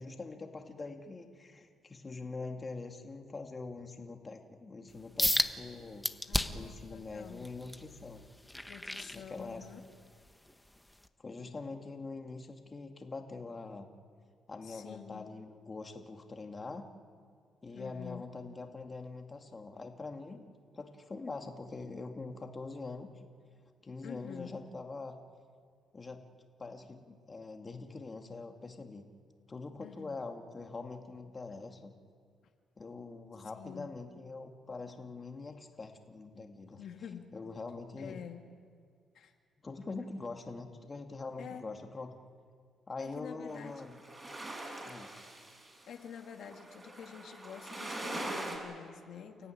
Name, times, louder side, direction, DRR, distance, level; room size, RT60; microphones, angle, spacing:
voice 1, 0.0-6.1 6.5-8.2 9.1-9.7 11.2-13.9 14.5-16.9 17.6-23.1 23.8-25.2 25.9-26.2 26.6-29.0 29.5-31.9 32.8-36.8 37.3-38.3 39.6-42.1 42.9-44.0 44.8-45.1, left 3 dB, 30° left, 4 dB, 2.2 m, -44 dB
sound 1, 5.2-5.5 6.0-6.7 7.2-9.8 10.3-10.5 11.0-11.1, left 1 dB, 5° left, 1.2 m, -32 dB
voice 2, 6.3-7.5 8.7-9.8 14.6-15.3 17.7-18.3 24.0-24.6 29.8-30.2 33.5-33.9 36.8-37.3 38.0-38.5 39.1-39.3 41.4-41.6 43.0-43.8 45.9-49.5, left 8 dB, 70° left, 4 dB, 2.0 m, -47 dB
sound 2, 43.5-48.6, right 2 dB, 25° right, 6.7 m, -42 dB
30.0 x 14.0 x 10.0 m, 2.1 s
cardioid pair, 90°, 0 cm